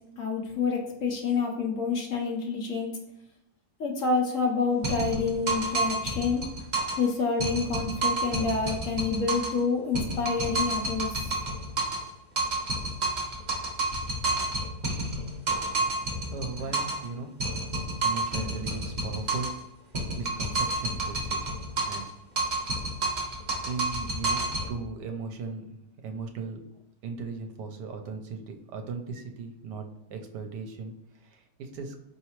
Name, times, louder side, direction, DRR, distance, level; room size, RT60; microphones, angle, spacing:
voice 1, 0.2-2.9 3.8-6.4 7.0-11.4, left 4 dB, 55° left, 0 dB, 1.0 m, -28 dB
sound 1, 4.8-7.1 7.4-9.6 9.9-12.1 12.4-17.1 17.4-19.6 19.9-22.1 22.4-24.7, right 2 dB, 55° right, 0.4 m, -29 dB
voice 2, 15.7-17.3 18.0-19.5 20.2-21.5 21.8-22.1 23.6-26.6 27.0-31.9, right 4 dB, 75° right, 4 dB, 1.2 m, -38 dB
4.6 x 3.2 x 2.9 m, 0.87 s
omnidirectional pair, 1.9 m